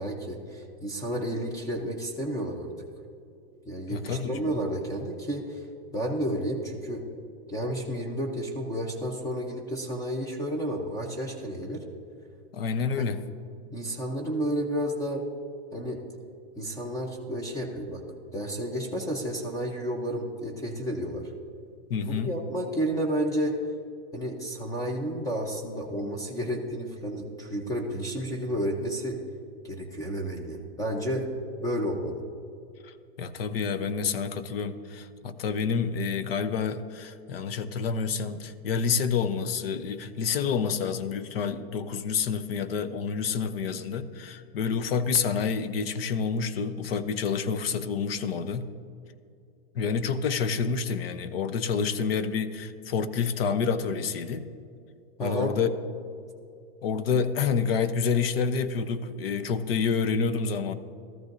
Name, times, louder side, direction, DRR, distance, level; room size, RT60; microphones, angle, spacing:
voice 1, 0.0-2.7 3.7-5.7 5.9-7.0 7.5-11.8 13.0-13.1 13.7-15.2 15.7-16.0 16.6-18.0 18.3-21.3 22.1-23.6 24.1-29.2 29.6-31.3 31.6-32.2 55.2-55.5, equal, 10° left, 2 dB, 0.7 m, -31 dB
voice 2, 3.9-4.6 12.5-13.2 21.9-22.3 32.8-48.7 49.7-54.5 55.2-55.7 56.8-60.7, left 6 dB, 70° left, 11 dB, 0.8 m, -28 dB
14.5 x 13.5 x 2.6 m, 2.4 s
hypercardioid pair, 145°, 30 cm